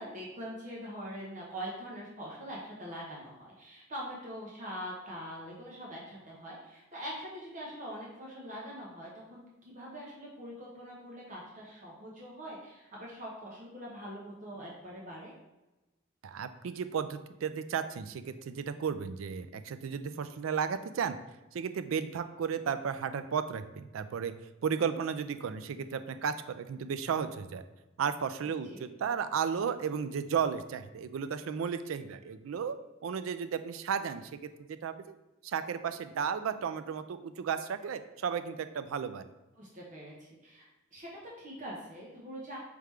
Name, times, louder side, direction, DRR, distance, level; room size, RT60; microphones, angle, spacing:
voice 1, 0.0-15.3 28.6-28.9 39.6-40.6 40.9-42.6, equal, 40° right, -4 dB, 0.9 m, -43 dB
voice 2, 16.2-21.2 21.5-24.3 24.6-27.6 28.0-32.8 33.0-34.3 34.7-35.2 35.4-39.2, right 7 dB, 80° right, 11 dB, 0.4 m, -34 dB
4.8 x 3.4 x 3.2 m, 1.0 s
head